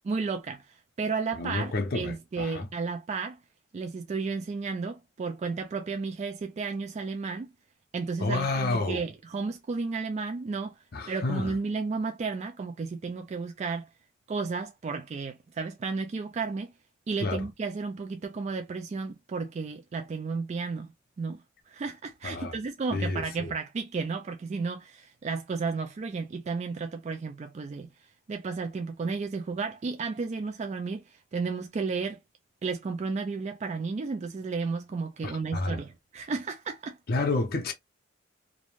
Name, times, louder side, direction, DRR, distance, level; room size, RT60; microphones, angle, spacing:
voice 1, 0.0-3.4 3.7-7.5 7.9-13.9 14.3-16.7 17.1-20.9 21.2-27.9 28.3-32.2 32.6-37.0, right 4 dB, 35° right, 0.3 m, -33 dB
voice 2, 1.4-2.7 8.2-9.0 10.9-11.5 17.2-17.4 22.2-22.5 22.9-23.5 35.2-35.8 37.1-37.7, left 2 dB, 50° left, 0.6 m, -30 dB
2.6 x 2.1 x 3.0 m
head